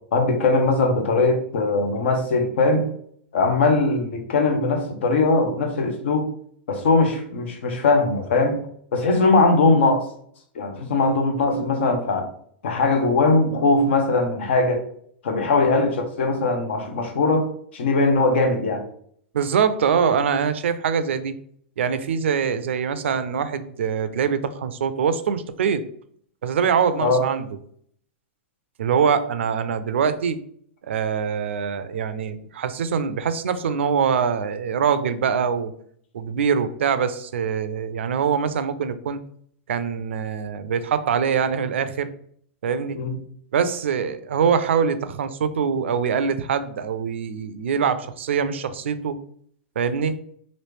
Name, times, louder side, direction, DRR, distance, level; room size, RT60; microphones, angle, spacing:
voice 1, 0.1-2.9 3.3-6.3 6.7-8.6 8.9-10.1 10.5-12.3 12.6-14.8 15.2-18.8 27.0-27.2 42.9-43.2, left 3 dB, 75° left, 5 dB, 0.8 m, -20 dB
voice 2, 19.3-21.3 21.8-25.8 26.4-27.5 28.8-30.4 30.8-35.7 36.1-39.2 39.7-42.1 42.6-43.0 43.5-49.1 49.8-50.1, right 7 dB, 85° right, 12 dB, 0.4 m, -23 dB
3.1 x 2.5 x 3.2 m, 0.62 s
hypercardioid pair, 130°, 6 cm